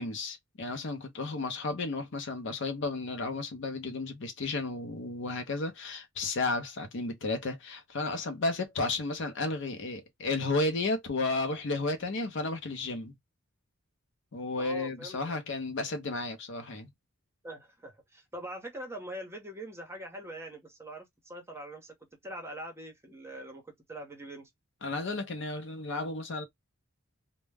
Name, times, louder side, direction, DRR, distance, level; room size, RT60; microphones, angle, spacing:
voice 1, 0.0-13.1 14.3-16.9 24.8-26.4, left 3 dB, 60° left, 0.6 m, -33 dB
voice 2, 14.6-15.4 17.4-21.9 22.2-24.5, right 1 dB, 10° right, 0.8 m, -43 dB
2.2 x 2.1 x 3.2 m
head